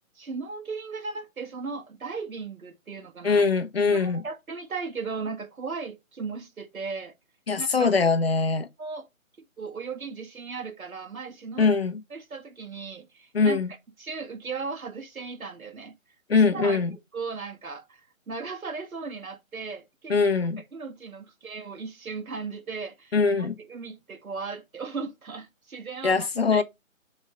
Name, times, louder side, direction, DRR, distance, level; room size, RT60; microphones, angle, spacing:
voice 1, 0.1-3.4 3.9-7.1 7.6-7.9 8.8-9.1 9.6-11.7 12.1-13.6 14.0-15.9 16.3-16.8 17.1-20.2 20.6-26.6, right 4 dB, 85° right, 1.6 m, -37 dB
voice 2, 3.2-4.2 7.5-8.7 11.6-12.0 13.3-13.7 16.3-16.9 20.1-20.6 23.1-23.5 26.0-26.6, left 4 dB, 45° left, 0.7 m, -22 dB
6.1 x 3.2 x 5.0 m
hypercardioid pair, 170°, 41 cm